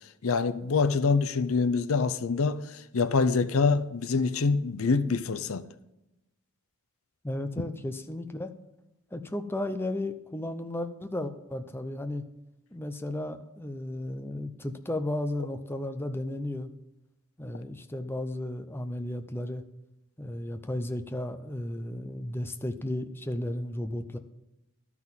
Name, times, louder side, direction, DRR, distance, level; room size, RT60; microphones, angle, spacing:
voice 1, 0.2-5.6, left 4 dB, 65° left, 0.6 m, -25 dB
voice 2, 7.2-8.5 9.1-12.2 12.7-16.7 17.4-19.6 20.2-24.2, left 1 dB, 10° left, 0.6 m, -34 dB
12.5 x 6.1 x 7.4 m
head